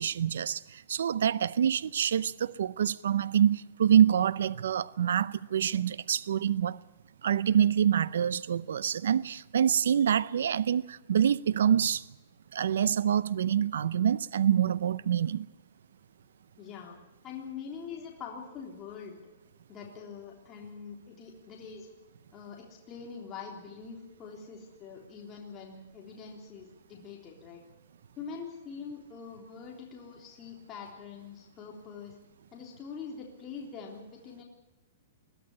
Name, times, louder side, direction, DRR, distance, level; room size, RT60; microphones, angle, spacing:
voice 1, 0.0-6.8 7.2-12.0 12.5-15.5, right 9 dB, 80° right, 0.6 m, -26 dB
voice 2, 16.6-17.0 17.2-19.2 19.7-21.9 22.3-27.6 28.2-32.2 32.5-34.4, left 6 dB, 20° left, 3.5 m, -44 dB
21.5 x 13.5 x 9.9 m
hypercardioid pair, 160°, 0 cm